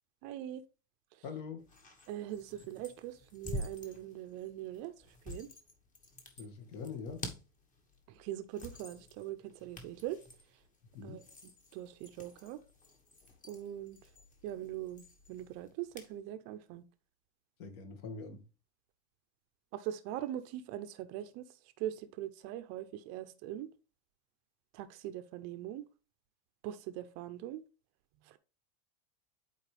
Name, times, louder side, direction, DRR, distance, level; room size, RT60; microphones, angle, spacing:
voice 1, 0.2-0.6 2.1-4.9 5.3-5.5 8.1-10.2 11.0-11.2 11.7-12.6 13.4-14.0 14.4-16.8 19.7-21.4 21.8-23.7 24.7-25.8 26.6-27.6 28.3-28.4, right 12 dB, 40° right, 0.7 m, -41 dB
voice 2, 1.2-1.6 6.4-7.2 10.9-11.2 17.6-18.4, left 5 dB, 55° left, 2.2 m, -43 dB
sound 1, 1.6-16.2, left 1 dB, 20° left, 1.4 m, -49 dB
11.0 x 4.6 x 3.4 m
supercardioid pair, 150°, 40 cm